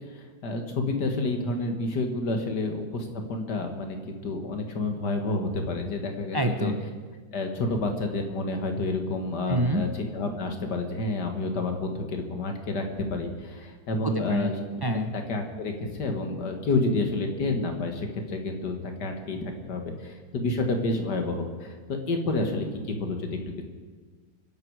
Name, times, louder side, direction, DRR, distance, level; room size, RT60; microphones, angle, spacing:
voice 1, 0.1-6.7 7.3-14.5 15.1-23.6, left 2 dB, 65° left, 4 dB, 2.3 m, -29 dB
voice 2, 6.3-6.8 9.5-9.8 14.0-14.5 14.8-15.1, right 1 dB, 30° right, 5 dB, 0.4 m, -26 dB
25.5 x 11.5 x 4.8 m, 1.5 s
omnidirectional pair, 1.9 m